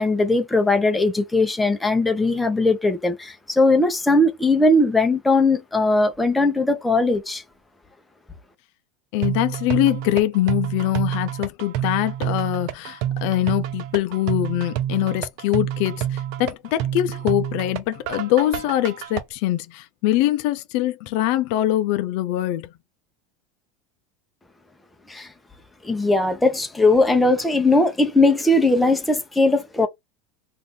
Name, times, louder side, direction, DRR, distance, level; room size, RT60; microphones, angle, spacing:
voice 1, 0.0-7.4 25.1-25.3 25.8-29.9, left 2 dB, 5° left, 0.7 m, -19 dB
voice 2, 9.1-22.7, left 14 dB, 60° left, 0.5 m, -23 dB
sound 1, 9.2-19.2, right 11 dB, 60° right, 0.6 m, -28 dB
2.6 x 2.6 x 3.6 m
supercardioid pair, 130°, 0 cm